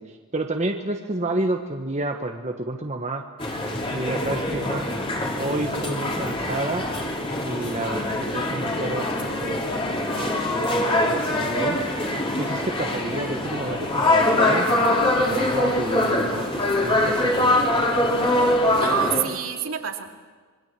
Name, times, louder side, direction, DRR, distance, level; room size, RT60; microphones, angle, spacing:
voice 1, 0.0-3.2 3.9-4.9 5.4-6.8 7.4-9.6 10.2-11.8 12.4-14.7 15.3-17.4, right 2 dB, 30° right, 3 dB, 1.3 m, -30 dB
sound 1, 3.4-19.2, left 1 dB, 25° left, 3.3 m, -23 dB
voice 2, 18.8-20.2, right 8 dB, 70° right, 3 dB, 2.7 m, -27 dB
27.0 x 23.0 x 7.6 m, 1.5 s
head